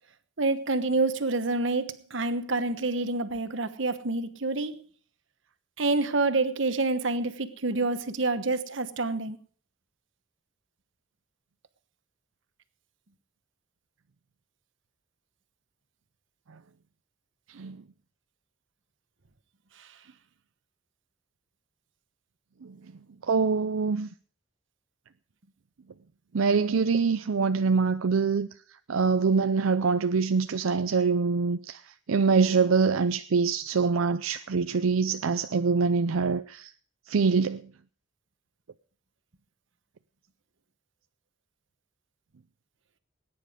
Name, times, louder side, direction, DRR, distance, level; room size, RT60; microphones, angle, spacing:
voice 1, 0.4-4.8 5.8-9.4 19.8-19.9, right 3 dB, 70° right, 1.1 m, -27 dB
voice 2, 23.3-24.1 26.3-28.5 28.9-31.8 32.1-36.7 37.1-37.6, right 5 dB, 90° right, 0.5 m, -24 dB
19.5 x 9.9 x 4.9 m
head